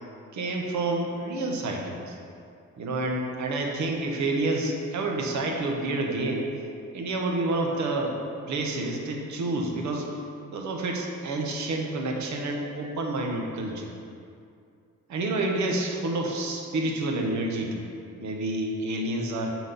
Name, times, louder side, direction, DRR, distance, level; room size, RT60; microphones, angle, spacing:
voice 1, 0.3-2.2 2.8-6.5 6.9-8.2 8.5-10.1 10.5-13.9 15.1-17.8 18.2-19.6, right 2 dB, 70° right, 1 dB, 1.3 m, -29 dB
6.2 x 6.1 x 5.5 m, 2.5 s
cardioid pair, 90°, 30 cm